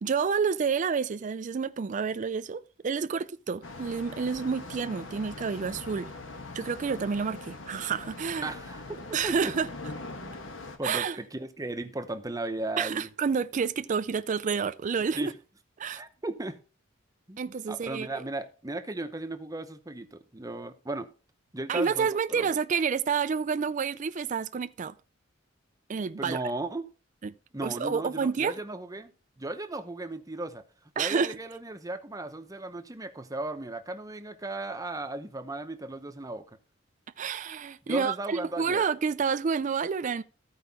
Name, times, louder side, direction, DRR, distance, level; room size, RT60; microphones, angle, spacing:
voice 1, 0.0-6.1 6.5-8.5 9.1-9.7 10.8-11.2 12.8-15.3 15.8-16.0 17.4-18.2 21.7-24.9 25.9-26.4 27.2-27.3 27.6-28.5 31.0-31.4 37.2-40.2, right 6 dB, 40° right, 0.4 m, -29 dB
sound 1, 3.6-10.8, left 2 dB, 70° left, 1.3 m, -42 dB
voice 2, 8.4-9.5 10.2-10.4 10.8-13.1 15.1-15.3 15.9-16.6 17.3-17.4 17.7-21.1 21.5-22.5 26.2-26.9 27.5-29.1 29.4-30.6 31.0-36.5 37.9-38.8, right 2 dB, 20° right, 0.8 m, -36 dB
14.0 x 4.8 x 4.1 m
head